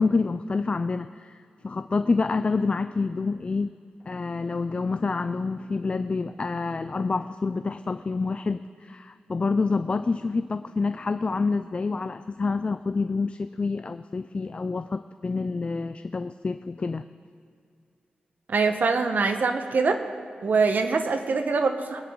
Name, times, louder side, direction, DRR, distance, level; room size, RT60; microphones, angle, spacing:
voice 1, 0.0-1.4 1.6-3.7 4.1-17.1, left 4 dB, 35° left, 10 dB, 0.4 m, -27 dB
voice 2, 18.5-20.0 20.4-22.0, right 4 dB, 60° right, 7 dB, 1.0 m, -24 dB
22.5 x 10.0 x 3.8 m, 2.2 s
wide cardioid pair, 95°, 3 cm